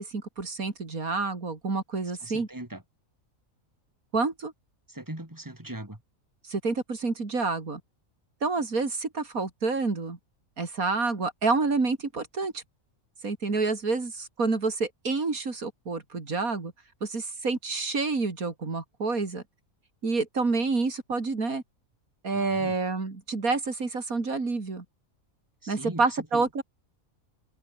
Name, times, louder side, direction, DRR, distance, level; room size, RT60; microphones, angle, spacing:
voice 1, 0.0-2.5 4.1-4.5 6.5-7.8 8.4-10.2 10.6-12.6 13.2-16.7 17.0-19.4 20.0-21.6 22.2-24.8 25.7-26.6, right 3 dB, 85° right, 3.6 m, -28 dB
voice 2, 2.2-2.8 4.9-6.0 22.3-22.8 25.6-26.0 26.3-26.5, right 1 dB, 15° right, 3.8 m, -39 dB
omnidirectional pair, 1.5 m